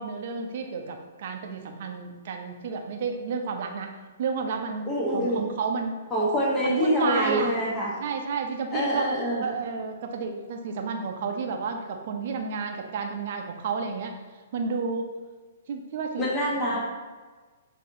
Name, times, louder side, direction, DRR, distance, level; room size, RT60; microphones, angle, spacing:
voice 1, 0.0-4.9 5.1-5.9 6.6-7.6 8.0-9.0 9.3-14.1 14.5-15.1 15.7-16.3 16.7-16.8, right 5 dB, 55° right, 4 dB, 0.6 m, -31 dB
voice 2, 4.9-5.5 6.1-7.9 8.7-9.5 16.2-16.8, equal, 15° left, -5 dB, 1.1 m, -25 dB
6.3 x 2.8 x 2.7 m, 1.4 s
figure-of-eight pair, 120°, 0 cm